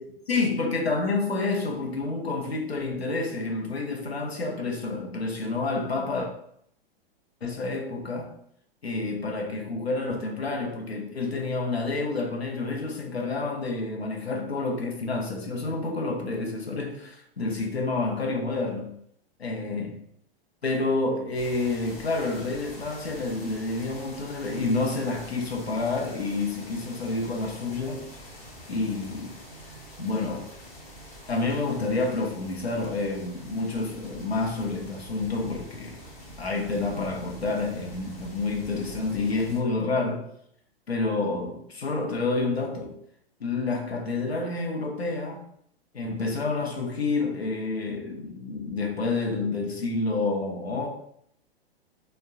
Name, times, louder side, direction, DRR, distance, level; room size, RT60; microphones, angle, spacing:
voice 1, 0.3-6.3 7.4-8.4 8.8-18.9 19.4-20.0 20.6-28.1 28.7-29.4 30.0-30.5 31.3-36.0 36.4-40.3 40.9-42.9 43.4-45.4 45.9-50.9, left 3 dB, 80° left, 0.7 m, -29 dB
sound 1, 21.3-39.6, equal, 20° left, 0.7 m, -45 dB
3.4 x 2.2 x 2.3 m
figure-of-eight pair, 105°, 31 cm